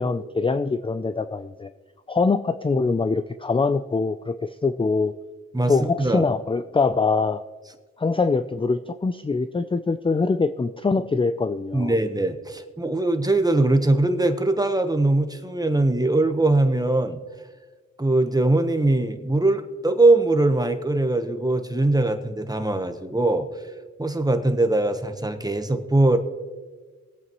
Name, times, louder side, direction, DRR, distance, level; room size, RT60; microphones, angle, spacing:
voice 1, 0.0-1.7 2.1-5.1 5.7-7.4 8.0-11.9, left 4 dB, 20° left, 10 dB, 0.4 m, -23 dB
voice 2, 6.0-6.3 11.7-17.2 18.0-23.5 24.0-26.2, right 2 dB, 15° right, 8 dB, 1.1 m, -21 dB
21.0 x 8.4 x 3.1 m, 1.4 s
cardioid pair, 60°, 30 cm